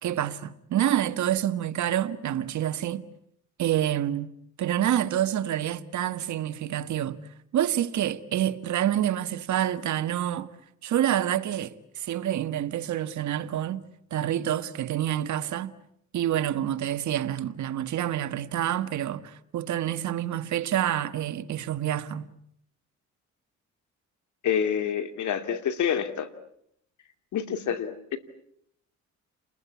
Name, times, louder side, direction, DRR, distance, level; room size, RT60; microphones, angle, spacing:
voice 1, 0.0-3.0 3.6-4.3 4.6-7.2 7.5-10.5 10.8-15.7 16.1-22.3, right 11 dB, 70° right, 1.6 m, -27 dB
voice 2, 24.4-26.3 27.3-28.2, left 8 dB, 70° left, 2.7 m, -27 dB
30.0 x 21.0 x 8.5 m
cardioid pair, 90°, 30 cm